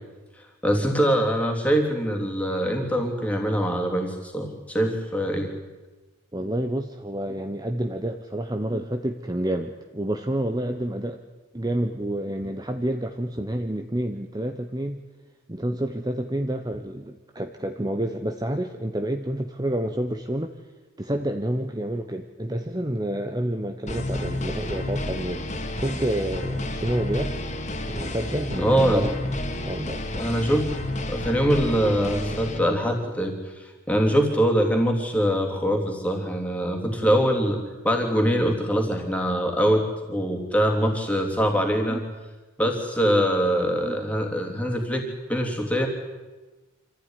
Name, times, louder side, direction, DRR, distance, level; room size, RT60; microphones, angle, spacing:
voice 1, 0.6-5.5 28.6-29.1 30.1-30.7 31.1-37.6 37.8-42.0 42.6-45.9, equal, 5° left, 1 dB, 3.2 m, -23 dB
voice 2, 6.3-11.2 11.5-15.0 15.5-20.5 21.0-25.5 25.8-27.4 27.9-29.1 29.6-30.3 41.9-42.0 43.8-44.0, right 1 dB, 20° right, 6 dB, 0.9 m, -29 dB
sound 1, 23.9-32.6, left 1 dB, 35° left, 2.4 m, -30 dB
26.0 x 15.0 x 10.0 m, 1.2 s
head